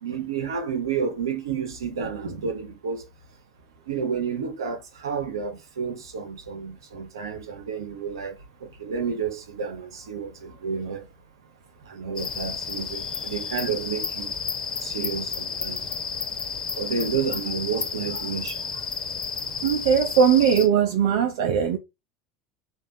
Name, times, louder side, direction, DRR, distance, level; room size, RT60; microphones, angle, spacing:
voice 1, 0.0-3.0 3.9-8.4 8.6-11.1 11.9-14.3 14.8-15.8 16.8-18.6, right 6 dB, 85° right, 1.0 m, -30 dB
sound 1, 12.2-20.7, left 5 dB, 30° left, 1.1 m, -32 dB
voice 2, 19.6-21.8, right 7 dB, 70° right, 0.6 m, -20 dB
3.4 x 2.5 x 3.9 m
hypercardioid pair, 80°, 2 cm